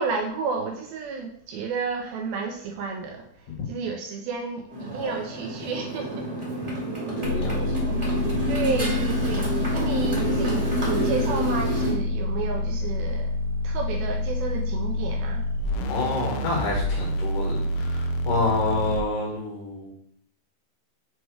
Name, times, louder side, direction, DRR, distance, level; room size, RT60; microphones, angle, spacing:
voice 1, 0.0-3.3 3.7-6.3 8.5-13.3 13.6-15.5, right 5 dB, 85° right, 2 dB, 2.1 m, -31 dB
Motorcycle, 4.7-11.9, equal, 20° right, 0.8 m, -28 dB
sound 1, 7.2-19.0, left 1 dB, 85° left, 2.9 m, -28 dB
voice 2, 7.2-7.6 15.9-19.9, left 3 dB, 70° left, -2 dB, 3.6 m, -28 dB
7.6 x 3.1 x 4.7 m, 0.66 s
omnidirectional pair, 4.9 m